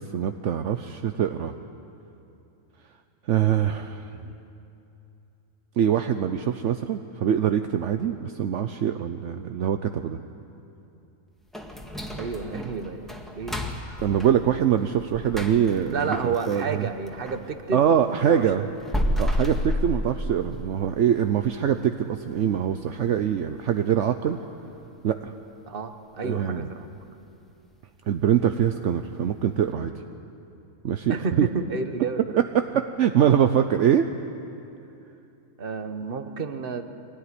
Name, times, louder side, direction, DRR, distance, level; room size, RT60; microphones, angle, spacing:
voice 1, 0.0-1.5 3.3-4.1 5.8-10.2 14.0-16.1 16.5-16.9 17.7-18.6 19.2-24.4 25.0-25.3 26.2-26.7 28.1-29.9 30.8-31.5 32.5-34.1, right 9 dB, 70° right, 8 dB, 1.0 m, -23 dB
sound 1, 11.5-17.5 17.9-20.7 21.1-21.2 21.6-21.8 22.3-22.6 22.9-23.0 23.6-23.7, left 1 dB, ahead, 1.8 m, -31 dB
voice 2, 12.2-13.6 15.9-18.7 25.7-26.9 31.1-32.5 32.7-32.8 35.6-36.8, right 4 dB, 45° right, 8 dB, 1.3 m, -31 dB
23.0 x 18.0 x 9.9 m, 2.8 s
omnidirectional pair, 1.4 m